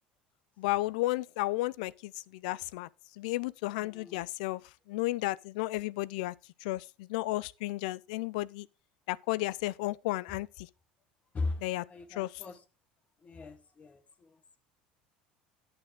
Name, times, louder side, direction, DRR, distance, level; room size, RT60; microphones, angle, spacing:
voice 1, 0.6-2.9 3.2-4.6 4.9-6.3 6.6-8.7 9.1-10.7 11.6-11.8 12.1-12.4, left 18 dB, 75° left, 0.4 m, -33 dB
voice 2, 3.7-4.2 11.3-11.6 11.9-12.6 13.2-14.0, left 3 dB, 30° left, 1.4 m, -38 dB
10.5 x 6.7 x 3.6 m
hypercardioid pair, 80°, 4 cm